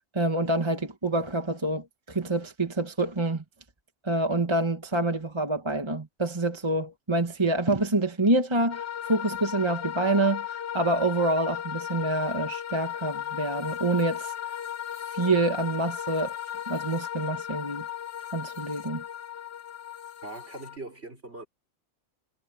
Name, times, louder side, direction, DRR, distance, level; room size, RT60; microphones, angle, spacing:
voice 1, 0.0-3.4 4.0-14.3 15.1-16.3 16.7-17.8 18.3-19.0, right 2 dB, 20° right, 1.6 m, -27 dB
sound 1, 8.7-20.8, left 10 dB, 55° left, 1.2 m, -36 dB
voice 2, 20.2-21.5, right 2 dB, 55° right, 5.4 m, -41 dB
omnidirectional pair, 1.3 m